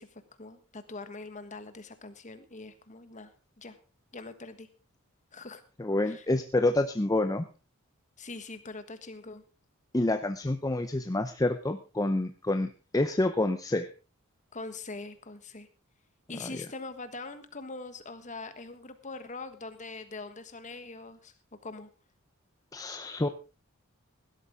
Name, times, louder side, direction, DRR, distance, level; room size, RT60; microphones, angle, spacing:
voice 1, 0.0-3.3 3.6-3.8 4.1-4.7 5.3-5.6 6.1-6.3 8.2-9.4 14.5-15.7 16.3-21.3 21.6-21.9, left 3 dB, 35° left, 10 dB, 1.5 m, -43 dB
voice 2, 5.8-7.5 9.9-13.9 16.4-16.5 22.7-23.3, left 2 dB, 15° left, 8 dB, 0.6 m, -28 dB
16.5 x 12.5 x 3.7 m, 0.33 s
head